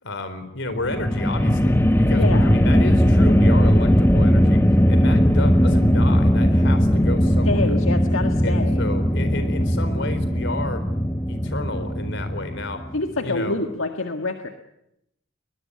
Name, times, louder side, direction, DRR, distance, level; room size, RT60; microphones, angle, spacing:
voice 1, 0.0-7.8 8.4-10.8 11.3-12.8 13.2-13.6, left 2 dB, 65° left, 11 dB, 4.1 m, -31 dB
sound 1, 0.7-13.1, equal, 10° left, 1.0 m, -18 dB
voice 2, 2.1-2.6 7.5-8.9 12.9-14.5, left 2 dB, 85° left, 5 dB, 1.7 m, -26 dB
22.5 x 21.0 x 9.8 m, 0.82 s
head